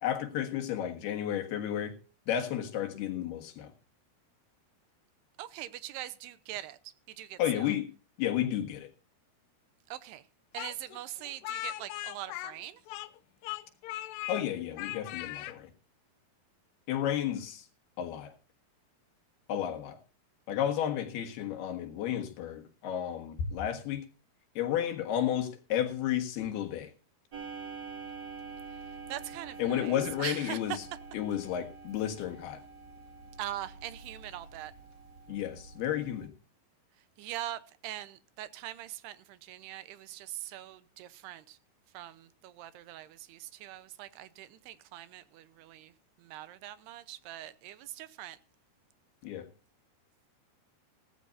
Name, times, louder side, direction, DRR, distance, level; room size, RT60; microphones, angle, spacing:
voice 1, 0.0-2.0 2.3-3.7 7.4-7.9 8.2-8.9 14.3-15.7 16.9-17.6 18.0-18.3 19.5-20.0 20.5-24.0 24.6-26.9 29.6-30.8 31.1-32.6 35.3-36.3 49.2-49.5, left 10 dB, 75° left, 3.5 m, -32 dB
voice 2, 5.4-6.8 7.1-7.7 9.9-10.2 10.5-12.8 29.1-30.8 33.4-34.7 37.2-41.6 41.9-45.9 46.2-48.4, right 13 dB, 80° right, 2.9 m, -42 dB
Speech, 10.6-13.2 13.4-14.4 14.8-15.6, left 15 dB, 90° left, 2.9 m, -39 dB
Clock, 27.3-36.3, right 5 dB, 40° right, 2.0 m, -46 dB
17.0 x 15.0 x 2.6 m
omnidirectional pair, 4.7 m